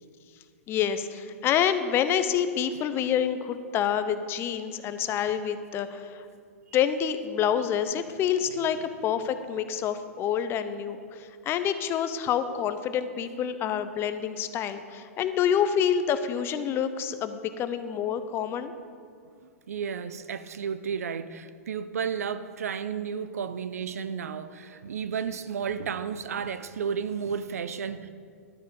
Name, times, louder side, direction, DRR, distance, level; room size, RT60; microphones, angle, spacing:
voice 1, 0.7-6.3 6.7-18.7, left 8 dB, 30° left, 11 dB, 0.7 m, -27 dB
voice 2, 19.7-28.1, right 7 dB, 75° right, 13 dB, 0.6 m, -32 dB
12.0 x 9.1 x 4.8 m, 2.2 s
hypercardioid pair, 120°, 8 cm